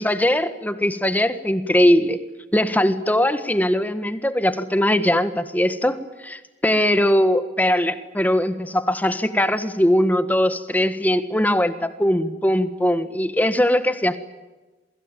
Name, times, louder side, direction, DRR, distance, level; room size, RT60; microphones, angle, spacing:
voice 1, 0.0-2.2 2.5-14.2, left 1 dB, 10° left, 11 dB, 1.6 m, -20 dB
28.0 x 22.5 x 9.1 m, 1.2 s
head